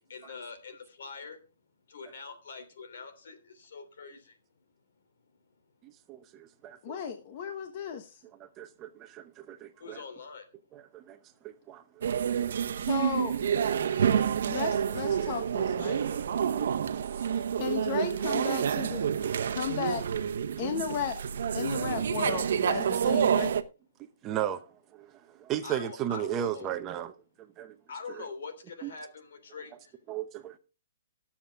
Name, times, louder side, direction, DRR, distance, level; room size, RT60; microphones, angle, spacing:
voice 1, 0.1-1.4 1.9-4.3 9.8-10.4 18.6-18.7 25.6-26.7 27.9-29.7, left 5 dB, 70° left, 3.1 m, -44 dB
voice 2, 5.8-7.0 8.4-10.0 10.7-11.2 11.4-12.1 16.5-16.8 24.2-24.6 24.9-27.1 27.6-27.8 28.1-28.2 28.8-28.9 30.1-30.6, right 10 dB, 20° right, 0.8 m, -36 dB
voice 3, 6.8-8.2 12.9-13.5 14.4-16.0 17.6-19.0 19.5-20.0 20.6-21.1 21.5-23.5, left 7 dB, 40° left, 1.2 m, -34 dB
sound 1, 12.0-23.6, right 8 dB, 65° right, 1.0 m, -28 dB
17.0 x 7.3 x 3.6 m
hypercardioid pair, 160°, 0 cm